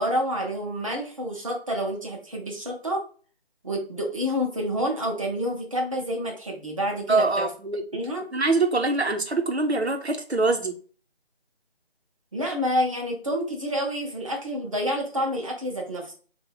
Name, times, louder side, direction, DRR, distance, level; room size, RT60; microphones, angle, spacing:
voice 1, 0.0-3.0 3.6-7.5 7.9-8.3 12.3-16.1, equal, 30° right, -2 dB, 1.0 m, -28 dB
voice 2, 7.1-7.8 8.3-10.8, right 3 dB, 85° right, 5 dB, 1.1 m, -24 dB
4.0 x 2.7 x 4.8 m, 0.40 s
figure-of-eight pair, 160°, 31 cm